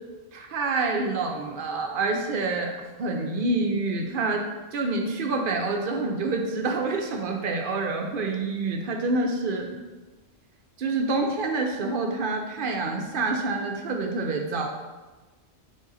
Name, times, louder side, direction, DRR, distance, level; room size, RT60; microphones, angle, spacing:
voice 1, 0.3-2.7 3.0-4.4 4.7-9.8 10.8-14.7, right 3 dB, 60° right, 2 dB, 0.6 m, -27 dB
3.7 x 3.5 x 4.0 m, 1.3 s
omnidirectional pair, 1.2 m